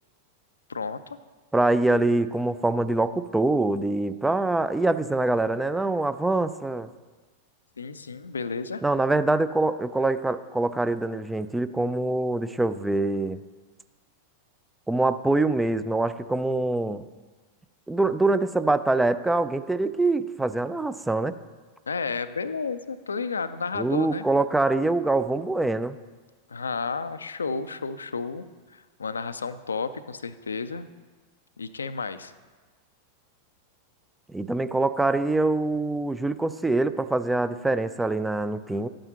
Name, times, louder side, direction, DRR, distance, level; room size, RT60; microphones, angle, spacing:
voice 1, 0.7-1.2 7.8-8.8 21.9-24.2 26.5-28.5 28.7-30.9 31.6-32.3, left 4 dB, 75° left, 13 dB, 0.4 m, -32 dB
voice 2, 1.5-6.9 8.8-13.4 14.9-17.0 17.9-21.4 23.7-26.0 34.3-38.9, right 2 dB, 5° right, 13 dB, 0.3 m, -24 dB
12.0 x 8.8 x 2.9 m, 1.3 s
figure-of-eight pair, 90°, 0 cm